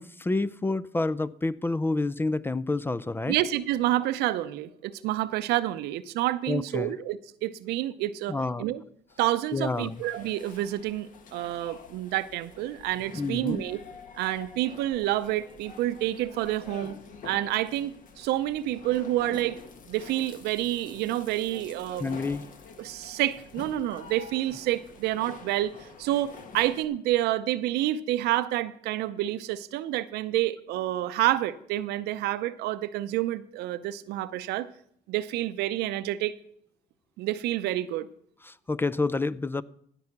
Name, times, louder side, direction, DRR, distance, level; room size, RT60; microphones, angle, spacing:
voice 1, 0.0-3.4 6.5-6.9 8.3-8.7 9.5-10.0 13.1-13.6 22.0-22.4 38.4-39.6, left 3 dB, 15° left, 18 dB, 0.4 m, -28 dB
voice 2, 3.3-8.8 9.2-13.8 14.2-17.0 17.2-19.6 19.9-22.2 22.8-34.7 35.1-36.3 37.2-38.1, right 14 dB, 75° right, 13 dB, 0.7 m, -28 dB
sound 1, 9.1-26.8, left 5 dB, 50° left, 1.4 m, -47 dB
16.0 x 5.6 x 5.9 m, 0.65 s
supercardioid pair, 90°, 17 cm